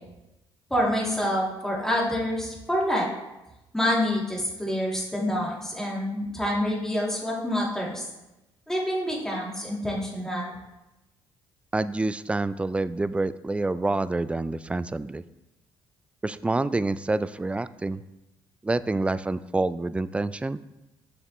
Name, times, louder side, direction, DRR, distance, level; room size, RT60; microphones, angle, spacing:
voice 1, 0.7-3.1 3.7-8.0 8.7-10.6, equal, 5° left, -4 dB, 2.6 m, -27 dB
voice 2, 11.7-15.2 16.2-18.0 18.6-20.6, right 2 dB, 10° right, 15 dB, 0.3 m, -27 dB
7.0 x 6.4 x 3.1 m, 0.96 s
supercardioid pair, 65°, 10 cm